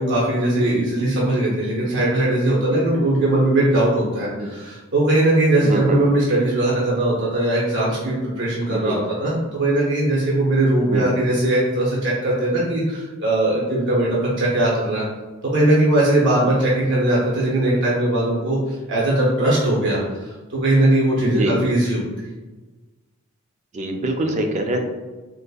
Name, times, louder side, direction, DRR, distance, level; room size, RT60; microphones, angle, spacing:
voice 1, 0.0-15.0 15.5-22.0, right 1 dB, 55° right, -6 dB, 0.7 m, -20 dB
voice 2, 5.6-6.0 8.7-9.0 10.8-11.0 21.2-21.5 23.7-24.8, right 1 dB, 35° right, 4 dB, 0.3 m, -24 dB
3.9 x 2.5 x 2.3 m, 1.2 s
head